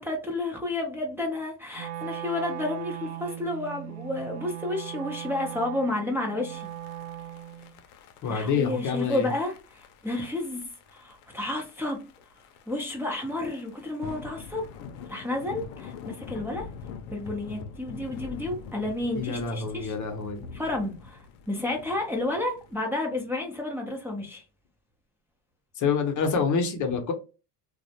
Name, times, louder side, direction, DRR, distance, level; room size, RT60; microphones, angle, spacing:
voice 1, 0.0-6.7 8.3-10.6 10.9-12.0 12.7-14.6 15.1-16.7 17.1-19.9 20.5-24.4, left 2 dB, 5° right, 0.6 m, -31 dB
Wind instrument woodwind instrument, 1.8-7.8, right 12 dB, 65° right, 0.5 m, -38 dB
sound 1, 6.5-22.8, left 6 dB, 85° left, 0.6 m, -45 dB
voice 2, 8.2-9.3 19.1-20.4 25.8-27.1, left 5 dB, 45° left, 0.7 m, -27 dB
2.4 x 2.0 x 2.7 m
supercardioid pair, 110°, 42 cm